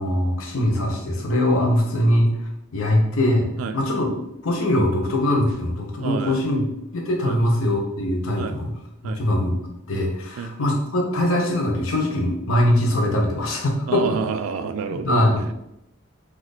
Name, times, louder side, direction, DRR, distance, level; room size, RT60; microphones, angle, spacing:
voice 1, 0.0-2.3 2.7-3.5 3.7-4.1 4.4-6.6 6.9-8.7 9.2-9.6 9.9-14.0 14.9-15.4, left 1 dB, 85° left, 0 dB, 0.8 m, -21 dB
voice 2, 6.0-6.4 7.2-7.4 8.4-8.6 9.0-9.2 10.4-10.6 13.9-15.5, right 5 dB, 85° right, 11 dB, 0.3 m, -29 dB
2.8 x 2.5 x 4.0 m, 0.86 s
head